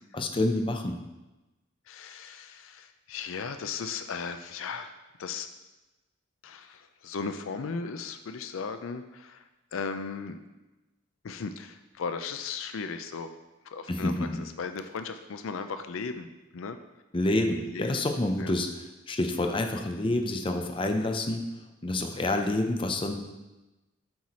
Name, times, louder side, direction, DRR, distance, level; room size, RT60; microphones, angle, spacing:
voice 1, 0.1-1.0 13.9-14.4 17.1-21.4 21.8-23.2, left 1 dB, 25° left, 4 dB, 0.6 m, -28 dB
voice 2, 1.9-5.5 6.4-10.4 11.2-13.3 13.6-16.8 17.7-18.0 18.4-18.5, left 5 dB, 75° left, 9 dB, 0.4 m, -37 dB
7.9 x 4.7 x 4.2 m, 1.1 s
head